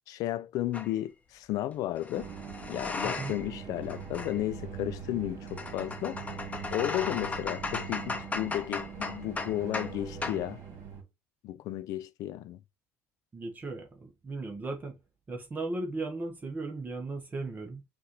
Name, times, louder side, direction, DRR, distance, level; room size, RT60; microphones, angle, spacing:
voice 1, 0.1-2.3 2.7-6.2 6.7-10.6 11.4-12.6, left 14 dB, 70° left, 0.4 m, -33 dB
sound 1, 0.7-0.9 2.0-3.5 3.8-10.0 10.2-10.4, left 3 dB, 20° left, 0.7 m, -37 dB
sound 2, 2.1-11.0, right 7 dB, 55° right, 1.6 m, -42 dB
voice 2, 3.0-3.4 13.3-15.0 15.3-17.8, right 3 dB, 25° right, 0.9 m, -36 dB
5.8 x 2.5 x 3.0 m
supercardioid pair, 90°, 6 cm